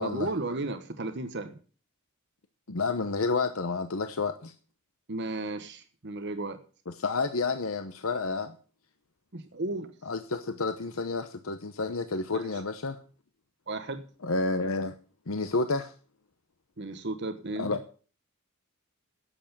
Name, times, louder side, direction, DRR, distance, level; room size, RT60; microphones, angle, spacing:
voice 1, 0.0-1.6 5.1-6.6 9.3-9.9 12.3-12.6 13.7-14.0 16.8-17.7, right 2 dB, 55° right, 9 dB, 1.2 m, -34 dB
voice 2, 2.7-4.5 6.9-8.5 10.1-13.0 14.2-14.9 15.3-15.9 17.6-17.8, left 3 dB, 75° left, 9 dB, 0.9 m, -30 dB
11.0 x 8.1 x 7.3 m, 0.39 s
head